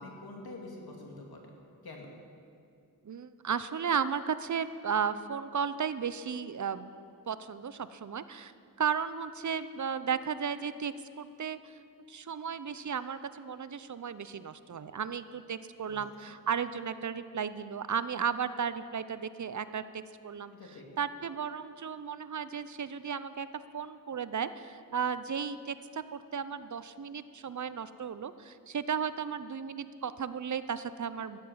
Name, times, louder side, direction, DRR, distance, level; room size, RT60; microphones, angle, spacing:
voice 1, 0.0-1.4 1.8-2.1 15.9-16.0 20.5-20.9, left 2 dB, 90° left, 0 dB, 2.5 m, -46 dB
voice 2, 3.0-6.9 7.3-11.8 12.1-20.5 21.0-23.5 23.7-31.4, right 7 dB, 55° right, 13 dB, 0.7 m, -34 dB
13.5 x 10.5 x 7.4 m, 2.4 s
cardioid pair, 65°, 36 cm